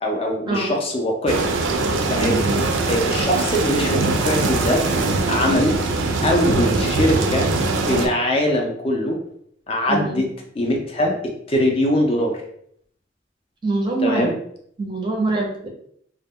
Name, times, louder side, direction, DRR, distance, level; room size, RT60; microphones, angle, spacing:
voice 1, 0.0-1.5 2.1-2.4 2.9-4.8 5.3-5.8 6.2-7.5 7.9-9.2 9.7-10.3 10.6-11.1 11.5-12.4 14.0-14.3, left 1 dB, 30° left, 1 dB, 0.4 m, -21 dB
sound 1, 1.3-8.1, right 3 dB, 80° right, 0.4 m, -22 dB
voice 2, 2.2-2.6 9.9-10.2 13.6-14.3 14.8-15.7, right 2 dB, 25° right, 0 dB, 0.5 m, -24 dB
2.1 x 2.0 x 3.5 m, 0.67 s
head